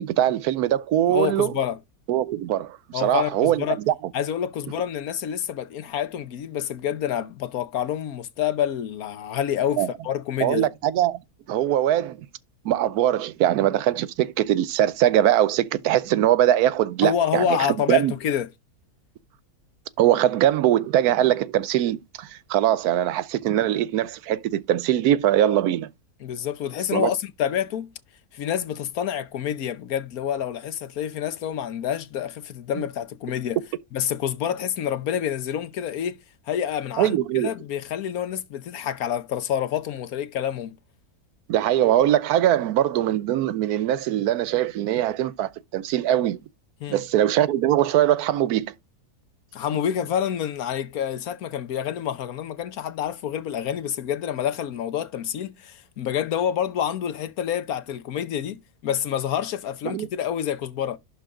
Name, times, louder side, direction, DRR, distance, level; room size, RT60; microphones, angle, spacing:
voice 1, 0.0-1.6 2.1-3.9 9.8-9.9 10.4-11.2 11.5-12.3 12.6-17.6 17.9-18.1 20.0-25.9 26.9-27.1 32.7-32.8 37.0-37.5 41.5-46.4 46.9-48.7 59.8-60.1, right 12 dB, 80° right, 1.1 m, -22 dB
voice 2, 1.1-1.8 2.9-3.8 4.1-10.7 17.0-18.5 26.2-27.9 28.3-33.6 33.9-40.8 46.8-47.0 49.5-61.0, left 9 dB, 75° left, 1.3 m, -28 dB
11.5 x 3.8 x 3.7 m
omnidirectional pair, 1.6 m